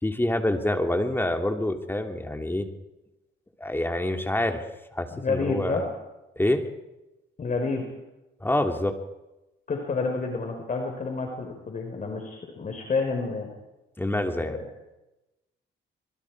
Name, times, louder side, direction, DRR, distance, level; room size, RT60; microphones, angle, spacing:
voice 1, 0.0-2.7 3.6-4.6 4.9-5.8 6.4-6.6 8.4-8.9 14.0-14.6, left 1 dB, 10° left, 5 dB, 3.1 m, -26 dB
voice 2, 5.1-5.8 7.4-7.8 9.7-13.5 14.3-14.6, left 4 dB, 40° left, 3 dB, 4.9 m, -29 dB
25.5 x 22.5 x 4.9 m, 0.98 s
cardioid pair, 90°, 20 cm